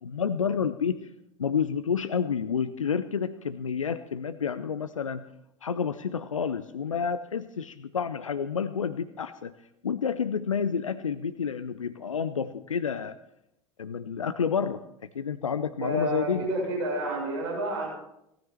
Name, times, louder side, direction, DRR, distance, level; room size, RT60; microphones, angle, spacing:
voice 1, 0.0-1.0 1.4-5.2 5.6-9.5 9.8-13.2 13.8-14.8 15.1-16.5, left 6 dB, 80° left, 13 dB, 0.5 m, -29 dB
voice 2, 15.8-17.9, right 1 dB, 60° right, -1 dB, 6.9 m, -29 dB
18.5 x 13.5 x 4.4 m, 0.82 s
figure-of-eight pair, 80°, 17 cm